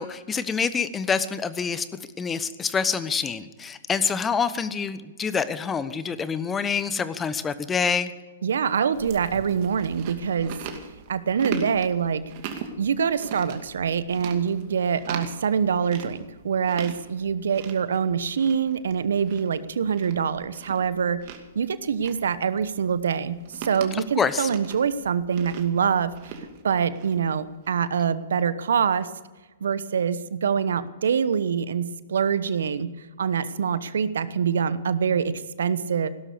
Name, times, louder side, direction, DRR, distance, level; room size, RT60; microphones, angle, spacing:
voice 1, 0.0-1.9 2.2-8.1 24.2-24.5, left 6 dB, 15° left, 13 dB, 1.0 m, -26 dB
voice 2, 8.4-10.6 11.1-12.2 12.8-21.2 21.5-26.3 26.6-29.1 29.6-32.9 33.2-36.1, right 7 dB, 75° right, 15 dB, 1.0 m, -25 dB
Chewing mastication, 8.9-27.9, right 6 dB, 45° right, 2.4 m, -40 dB
16.5 x 12.5 x 6.8 m, 1.2 s
hypercardioid pair, 120°, 0 cm